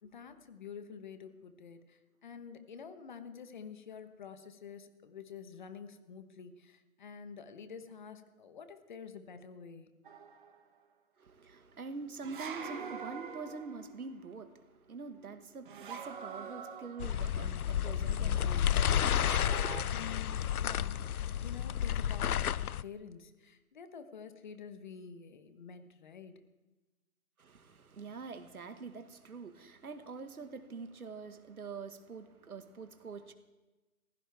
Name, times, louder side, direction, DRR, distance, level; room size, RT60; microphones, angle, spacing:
voice 1, 0.0-9.9 19.9-26.3, left 6 dB, 35° left, 9 dB, 1.2 m, -48 dB
sound 1, 10.1-10.6 12.2-14.0 15.7-17.4 19.2-19.8, right 6 dB, 35° right, 1.3 m, -44 dB
voice 2, 11.2-19.5 27.4-33.3, right 4 dB, 85° right, 8 dB, 1.8 m, -45 dB
sound 2, 17.0-22.8, left 9 dB, 85° left, 0.6 m, -31 dB
22.0 x 15.5 x 3.5 m, 1.1 s
hypercardioid pair, 160°, 43 cm